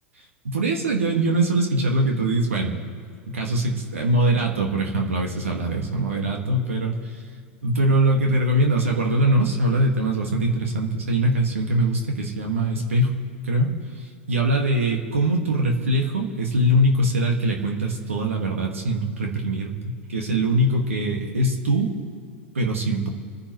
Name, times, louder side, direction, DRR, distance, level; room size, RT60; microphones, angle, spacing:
voice 1, 0.4-2.8 3.3-7.2 7.6-13.2 13.4-22.0 22.5-23.1, right 1 dB, 85° right, 1 dB, 2.0 m, -22 dB
27.5 x 10.0 x 3.2 m, 2.2 s
hypercardioid pair, 100°, 7 cm